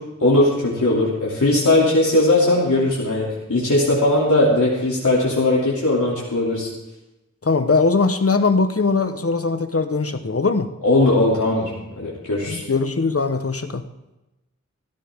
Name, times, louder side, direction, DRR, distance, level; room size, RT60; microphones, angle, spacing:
voice 1, 0.2-6.7 10.8-12.6, left 2 dB, 90° left, -6 dB, 3.0 m, -19 dB
voice 2, 7.4-10.7 12.5-13.8, left 4 dB, 50° left, 9 dB, 1.1 m, -20 dB
16.0 x 14.5 x 3.7 m, 0.97 s
wide cardioid pair, 60°, 29 cm